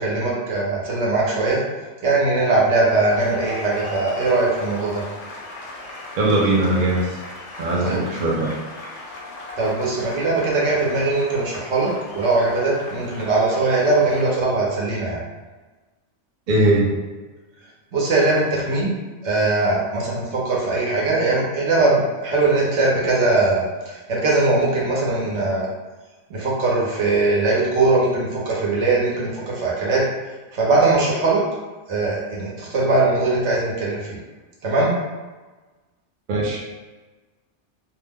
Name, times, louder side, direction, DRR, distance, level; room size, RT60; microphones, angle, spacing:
voice 1, 0.0-1.6 2.0-5.0 7.8-8.0 9.6-15.2 17.9-18.9 19.2-25.7 26.3-30.1 30.5-31.4 31.9-34.0 34.6-34.9, right 3 dB, 75° right, -4 dB, 1.1 m, -20 dB
sound 1, 2.8-14.4, left 2 dB, 70° left, 0.9 m, -37 dB
voice 2, 6.2-7.2 7.6-8.5 16.5-16.9 36.3-36.6, right 1 dB, 55° right, -3 dB, 0.7 m, -20 dB
2.6 x 2.0 x 3.4 m, 1.2 s
omnidirectional pair, 1.2 m